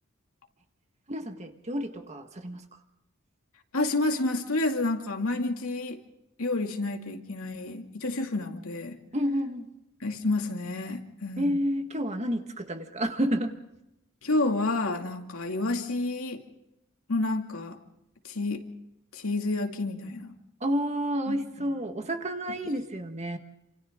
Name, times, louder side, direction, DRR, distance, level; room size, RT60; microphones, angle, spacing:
voice 1, 1.1-2.6 9.1-9.7 11.4-13.5 20.6-23.4, equal, 30° right, 6 dB, 1.6 m, -30 dB
voice 2, 3.7-6.0 6.4-9.0 10.0-11.6 14.2-16.4 17.1-17.8 18.2-18.6 19.1-20.3 21.3-21.4, left 2 dB, 75° left, 3 dB, 2.4 m, -29 dB
28.5 x 26.5 x 3.7 m, 0.88 s
head